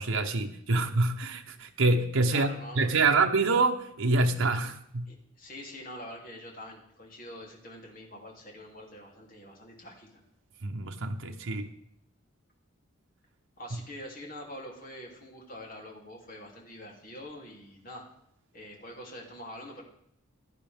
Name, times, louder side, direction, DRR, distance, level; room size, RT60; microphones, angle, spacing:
voice 1, 0.0-2.5 2.8-5.1 10.6-11.7, right 3 dB, 80° right, 3 dB, 0.9 m, -26 dB
voice 2, 2.3-3.2 5.1-10.2 13.6-18.0 18.5-19.8, left 1 dB, 45° left, -1 dB, 3.0 m, -45 dB
16.0 x 11.0 x 3.5 m, 0.73 s
head